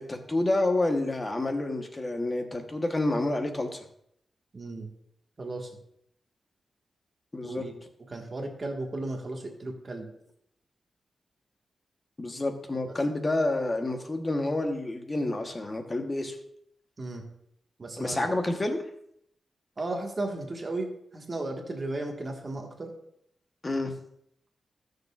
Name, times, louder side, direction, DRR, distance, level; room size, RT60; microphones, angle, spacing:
voice 1, 0.0-3.8 7.3-7.6 12.2-16.4 18.0-18.8 23.6-23.9, left 2 dB, 20° left, 5 dB, 1.0 m, -28 dB
voice 2, 4.5-4.9 5.4-5.7 7.4-7.7 8.1-10.1 12.8-12.9 17.0-17.2 17.8-18.3 19.8-22.9, right 2 dB, 30° right, 1 dB, 1.5 m, -35 dB
19.0 x 6.7 x 2.4 m, 0.73 s
wide cardioid pair, 175°, 0 cm